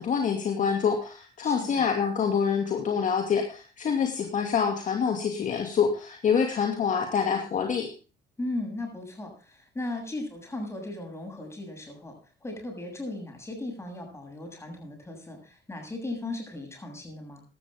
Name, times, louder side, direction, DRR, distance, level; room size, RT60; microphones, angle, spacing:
voice 1, 0.0-7.9, left 6 dB, 50° left, 3 dB, 2.5 m, -26 dB
voice 2, 1.4-1.9 8.4-12.1 12.4-17.4, left 2 dB, 15° left, 2 dB, 7.6 m, -37 dB
15.5 x 12.5 x 3.7 m, 0.36 s
cardioid pair, 110°, 17 cm